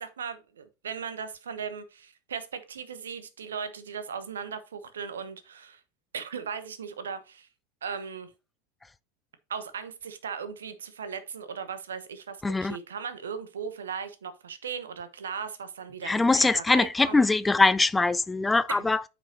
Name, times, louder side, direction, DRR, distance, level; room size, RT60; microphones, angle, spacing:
voice 1, 0.0-5.8 6.1-7.5 7.8-8.3 9.5-17.2 18.7-18.9, right 6 dB, 70° right, 1.0 m, -37 dB
voice 2, 12.4-12.8 16.1-19.0, left 3 dB, 10° left, 0.3 m, -22 dB
9.0 x 5.2 x 3.0 m
figure-of-eight pair, 80°, 0 cm